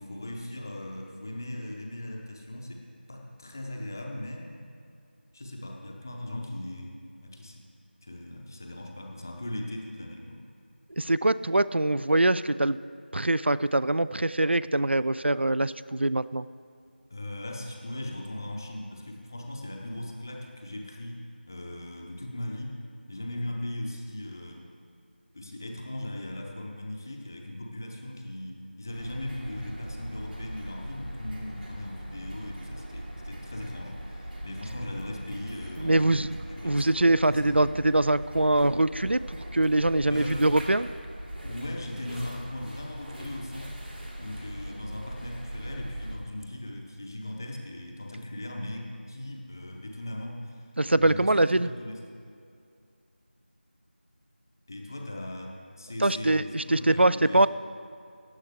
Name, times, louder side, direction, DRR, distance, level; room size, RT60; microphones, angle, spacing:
voice 1, 0.0-4.7 5.3-7.6 8.0-10.4 17.1-21.2 21.5-22.8 23.1-24.6 25.3-37.0 37.3-37.7 40.1-40.5 41.4-43.8 44.2-52.0 54.7-57.5, left 1 dB, 20° left, 1 dB, 0.7 m, -38 dB
voice 2, 11.0-12.8 13.1-16.5 35.8-36.3 36.6-40.9 50.8-51.7 56.0-57.5, right 1 dB, 90° right, 17 dB, 0.3 m, -23 dB
sound 1, 28.9-46.2, equal, 70° right, 2.8 m, -40 dB
15.0 x 9.5 x 3.4 m, 2.4 s
figure-of-eight pair, 170°, 6 cm